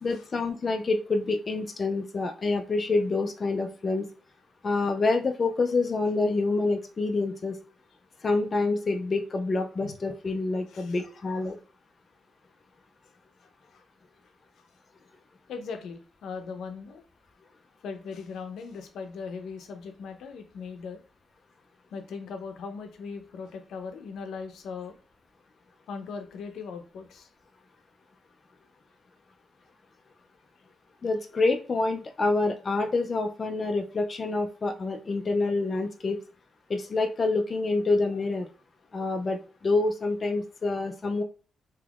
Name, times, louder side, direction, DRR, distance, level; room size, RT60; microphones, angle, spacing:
voice 1, 0.0-4.1 4.6-7.6 8.2-11.6 31.0-36.2 36.7-38.5 38.9-41.2, left 3 dB, 35° left, 4 dB, 0.4 m, -27 dB
voice 2, 15.5-17.0 17.8-21.0 21.9-24.9 25.9-27.3, left 5 dB, 85° left, 5 dB, 0.5 m, -39 dB
3.4 x 2.9 x 2.3 m, 0.38 s
cardioid pair, 110°, 0 cm